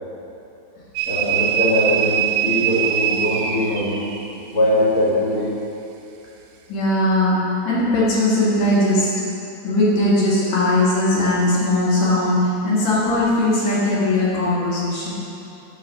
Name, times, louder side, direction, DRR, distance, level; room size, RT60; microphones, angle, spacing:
sound 1, 1.0-4.3, right 10 dB, 80° right, 2.6 m, -22 dB
voice 1, 1.1-4.1 4.5-5.6, left 1 dB, 90° left, -8 dB, 0.8 m, -21 dB
voice 2, 6.7-9.1 9.6-15.1, left 1 dB, 55° left, -7 dB, 2.5 m, -19 dB
11.5 x 4.9 x 6.2 m, 3.0 s
omnidirectional pair, 5.5 m